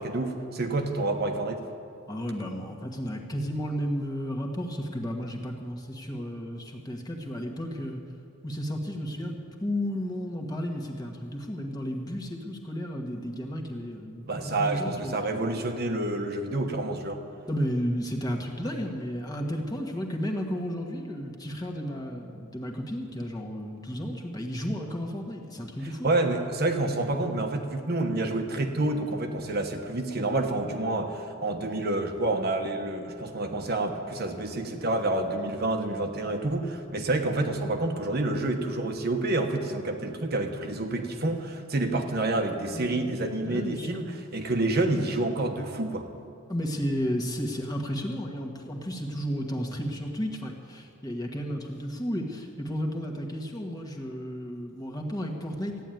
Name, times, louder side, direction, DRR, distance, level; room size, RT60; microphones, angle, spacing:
voice 1, 0.0-1.6 14.3-17.2 26.0-46.1, right 2 dB, 50° right, 4 dB, 1.2 m, -28 dB
voice 2, 2.1-8.0 8.4-15.5 17.5-26.1 42.7-43.1 43.4-44.0 46.5-55.8, equal, 20° left, 1 dB, 1.5 m, -33 dB
14.5 x 10.0 x 9.1 m, 2.4 s
head